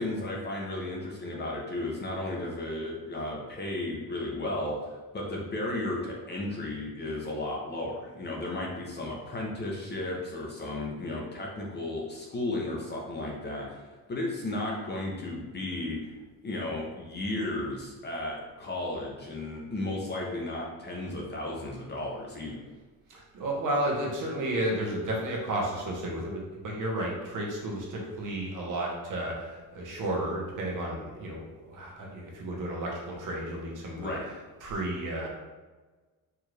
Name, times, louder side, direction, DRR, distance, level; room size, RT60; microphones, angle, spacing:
voice 1, 0.0-13.8 14.1-16.1 16.4-22.6 33.9-34.2, left 2 dB, 30° left, -2 dB, 0.7 m, -34 dB
voice 2, 23.1-35.3, right 1 dB, 55° right, -2 dB, 1.0 m, -32 dB
4.6 x 2.5 x 3.2 m, 1.3 s
cardioid pair, 140°, 37 cm